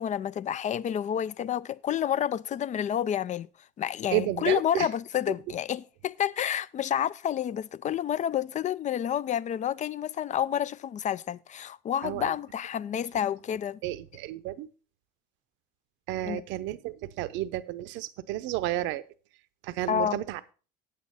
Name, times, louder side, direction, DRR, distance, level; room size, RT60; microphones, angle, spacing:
voice 1, 0.0-3.5 3.8-13.8 16.3-16.4 19.9-20.2, left 10 dB, 35° left, 0.5 m, -29 dB
voice 2, 4.1-4.9 12.0-12.3 13.8-14.7 16.1-19.0 19.6-20.4, right 15 dB, 65° right, 0.7 m, -31 dB
8.7 x 8.3 x 4.2 m
hypercardioid pair, 65°, 21 cm